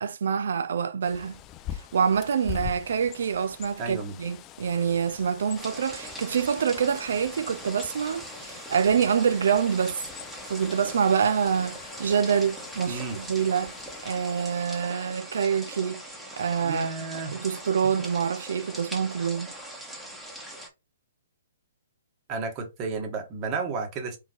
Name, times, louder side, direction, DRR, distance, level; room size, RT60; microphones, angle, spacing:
voice 1, 0.0-1.4 1.7-10.0 10.5-13.7 14.0-16.0 16.4-16.9 17.3-19.5, right 7 dB, 65° right, 0.5 m, -26 dB
Bird, 1.0-14.1, left 11 dB, 25° left, 0.4 m, -43 dB
voice 2, 3.8-4.2 12.9-13.2 16.6-17.3 17.8-17.9 22.3-24.2, right 4 dB, 30° right, 1.6 m, -32 dB
sound 1, 5.5-20.7, right 1 dB, 5° right, 1.4 m, -41 dB
4.3 x 4.0 x 3.0 m
hypercardioid pair, 135°, 0 cm